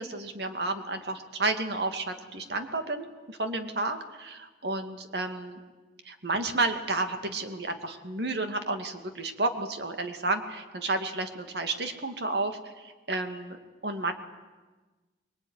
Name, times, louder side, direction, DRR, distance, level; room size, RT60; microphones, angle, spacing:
voice 1, 0.0-5.6 6.0-13.6 13.8-14.1, right 2 dB, 70° right, 6 dB, 2.4 m, -31 dB
25.0 x 22.0 x 9.9 m, 1.3 s
head